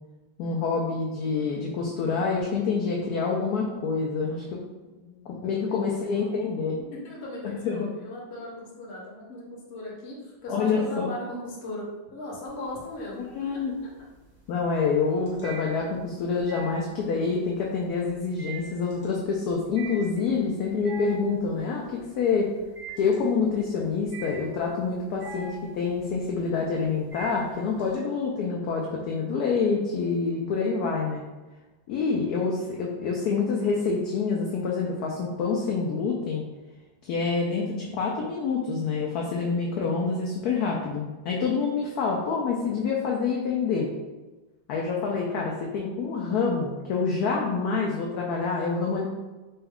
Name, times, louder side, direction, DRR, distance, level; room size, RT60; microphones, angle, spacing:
voice 1, 0.4-4.6 5.3-6.8 7.4-7.9 10.5-11.1 13.2-13.7 14.5-22.5 23.0-31.2 31.9-36.4 37.0-43.9 44.7-49.1, left 5 dB, 75° left, -1 dB, 0.9 m, -27 dB
voice 2, 4.8-6.4 6.8-11.8 12.1-13.6, left 1 dB, 45° left, -4 dB, 0.9 m, -39 dB
sound 1, 12.5-13.1 13.5-28.0, right 4 dB, 35° right, 0.5 m, -43 dB
4.1 x 2.3 x 3.5 m, 1.2 s
omnidirectional pair, 2.1 m